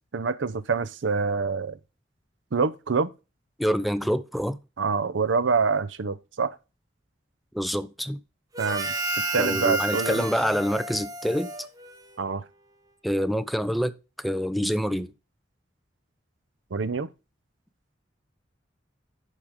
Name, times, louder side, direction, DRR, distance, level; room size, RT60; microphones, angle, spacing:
voice 1, 0.1-1.8 2.5-3.1 4.8-6.6 8.6-8.9 9.3-10.3 12.2-12.4 16.7-17.1, right 5 dB, 85° right, 0.6 m, -26 dB
voice 2, 3.6-4.6 7.5-8.2 9.4-11.5 13.0-15.1, equal, ahead, 0.4 m, -26 dB
Harmonica, 8.5-12.3, right 2 dB, 20° right, 1.0 m, -31 dB
10.5 x 4.9 x 3.7 m
head